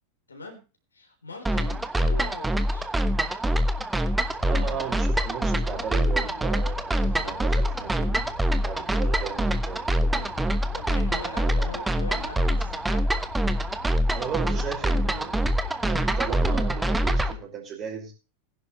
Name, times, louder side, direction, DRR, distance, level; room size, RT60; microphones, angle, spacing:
voice 1, 0.3-0.6 0.9-2.9 4.4-4.7 6.9-7.4 10.6-13.1, left 2 dB, 75° left, 4 dB, 3.9 m, -41 dB
sound 1, 1.5-17.3, right 1 dB, 5° right, 1.1 m, -25 dB
sound 2, 4.0-16.5, left 5 dB, 55° left, 2.8 m, -45 dB
voice 2, 4.4-8.2 8.6-10.4 11.3-11.7 14.1-15.3 15.8-18.1, right 7 dB, 30° right, 1 dB, 5.2 m, -36 dB
19.5 x 11.0 x 3.2 m, 0.33 s
figure-of-eight pair, 90°, 0 cm